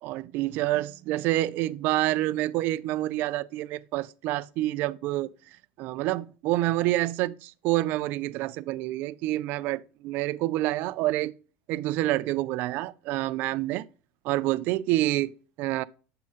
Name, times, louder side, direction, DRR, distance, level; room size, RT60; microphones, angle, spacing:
voice 1, 0.0-5.3 5.8-11.3 11.7-13.9 14.2-15.8, right 16 dB, 45° right, 0.3 m, -27 dB
7.3 x 4.2 x 3.8 m
cardioid pair, 165°, 5 cm